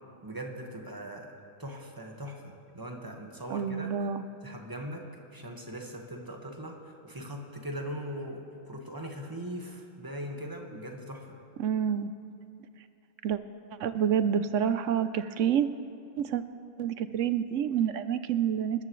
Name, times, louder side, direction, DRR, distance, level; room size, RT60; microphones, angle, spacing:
voice 1, 0.2-1.3 1.6-3.9 4.4-5.0 5.3-11.4, equal, 15° right, 1 dB, 1.4 m, -40 dB
voice 2, 3.5-4.3 11.6-12.1 13.2-13.4 13.8-15.7 16.2-16.4 16.8-18.8, right 8 dB, 65° right, 12 dB, 0.8 m, -28 dB
27.5 x 13.5 x 3.1 m, 2.6 s
omnidirectional pair, 1.6 m